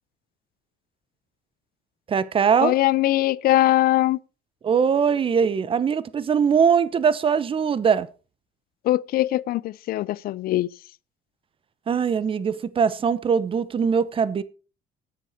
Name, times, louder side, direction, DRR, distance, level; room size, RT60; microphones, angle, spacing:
voice 1, 2.1-2.7 4.6-8.1 11.9-14.4, right 6 dB, 30° right, 0.7 m, -21 dB
voice 2, 2.6-4.2 8.8-10.7, left 15 dB, 60° left, 0.4 m, -21 dB
9.5 x 9.0 x 4.5 m
cardioid pair, 110°, 17 cm